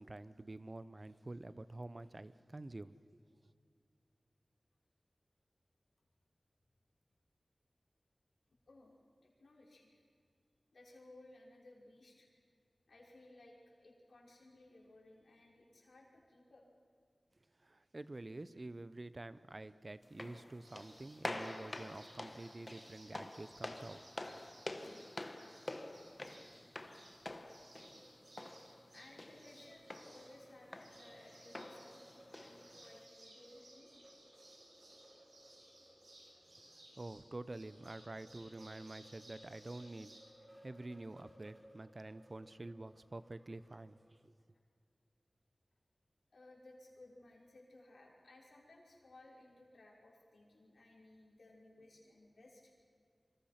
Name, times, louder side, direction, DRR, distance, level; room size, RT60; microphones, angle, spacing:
voice 1, 0.0-3.2 17.6-24.0 36.9-40.1 40.6-44.0 44.2-44.3, right 2 dB, 40° right, 14 dB, 0.8 m, -48 dB
voice 2, 9.2-10.0 10.7-12.3 12.9-16.6 28.9-33.9 46.3-52.7, left 2 dB, 90° left, -2 dB, 5.5 m, -60 dB
sound 1, 20.0-33.1, left 2 dB, 35° left, 1.4 m, -48 dB
sound 2, 20.6-40.2, right 1 dB, 80° right, 6.2 m, -61 dB
sound 3, 27.6-44.3, equal, 20° right, 4.9 m, -64 dB
26.5 x 25.5 x 5.9 m, 2.3 s
wide cardioid pair, 65°, 0 cm